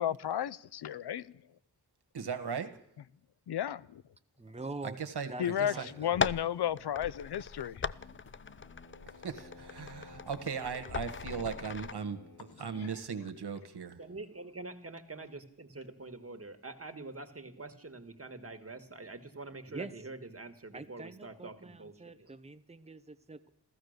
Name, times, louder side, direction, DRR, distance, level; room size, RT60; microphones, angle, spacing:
voice 1, 0.0-1.3 3.5-4.0 5.4-7.9 12.7-12.9, left 10 dB, 80° left, 0.6 m, -33 dB
voice 2, 2.1-2.7 4.8-5.9 9.2-14.0, right 6 dB, 75° right, 1.5 m, -38 dB
voice 3, 4.4-5.0 5.3-6.3 19.7-19.9 20.7-23.5, right 3 dB, 15° right, 1.0 m, -45 dB
sound 1, 5.8-12.9, left 3 dB, 55° left, 3.8 m, -55 dB
sound 2, 6.0-11.9, left 6 dB, 30° left, 0.5 m, -39 dB
voice 4, 14.0-22.3, right 3 dB, 35° right, 1.9 m, -46 dB
15.0 x 14.5 x 6.6 m
cardioid pair, 50°, 40 cm